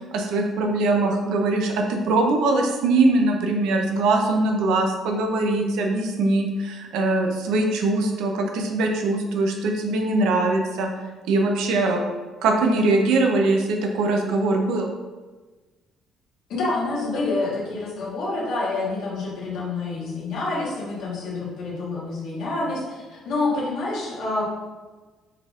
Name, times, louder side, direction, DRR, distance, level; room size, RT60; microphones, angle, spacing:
voice 1, 0.1-10.9 11.2-12.0 12.4-14.9, right 2 dB, 85° right, 2 dB, 0.5 m, -22 dB
voice 2, 16.5-24.5, left 3 dB, 65° left, -6 dB, 1.3 m, -27 dB
4.5 x 3.4 x 2.4 m, 1.3 s
cardioid pair, 165°, 0 cm